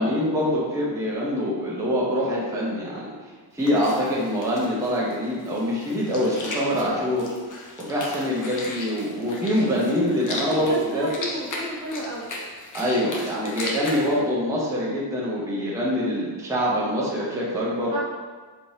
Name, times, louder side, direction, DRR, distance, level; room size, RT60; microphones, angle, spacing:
voice 1, 0.0-3.1 3.5-7.3 7.8-11.1 12.7-17.9, equal, 5° right, -6 dB, 0.7 m, -24 dB
sound 1, 3.6-14.1, left 2 dB, 45° left, 0.7 m, -36 dB
voice 2, 10.4-12.3 17.9-18.0, equal, 45° right, -4 dB, 0.8 m, -32 dB
4.3 x 3.1 x 2.7 m, 1.4 s
wide cardioid pair, 145°, 45 cm